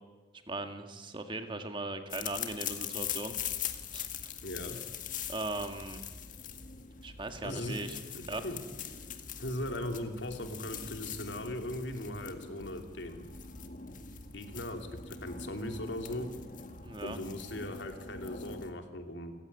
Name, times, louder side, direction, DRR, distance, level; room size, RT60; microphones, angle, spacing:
voice 1, 0.5-3.3 3.9-4.1 5.3-6.0 7.0-8.0 8.3-8.4 16.8-17.2, right 2 dB, 25° right, 6 dB, 1.9 m, -38 dB
sound 1, 2.1-18.7, left 7 dB, 45° left, 1.8 m, -42 dB
voice 2, 4.4-4.8 7.4-7.8 8.4-8.6 9.4-13.3 14.3-16.3 17.0-19.3, left 1 dB, 75° left, 5 dB, 3.0 m, -38 dB
29.5 x 15.5 x 9.9 m, 1.4 s
head